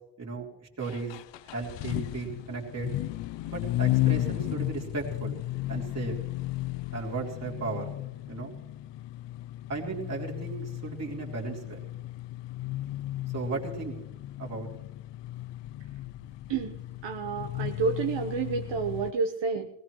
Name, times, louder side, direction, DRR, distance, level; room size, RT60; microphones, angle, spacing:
voice 1, 0.2-0.5 0.8-1.2 1.4-3.0 3.5-5.4 5.7-6.2 6.9-7.9 8.3-8.5 9.7-11.8 13.3-13.9 14.4-14.7, right 4 dB, 35° right, -2 dB, 3.1 m, -35 dB
sound 1, 0.8-19.1, left 16 dB, 70° left, 0.5 m, -34 dB
voice 2, 16.5-19.7, right 5 dB, 70° right, 4 dB, 1.1 m, -30 dB
20.0 x 18.5 x 3.1 m, 0.89 s
cardioid pair, 150°, 45 cm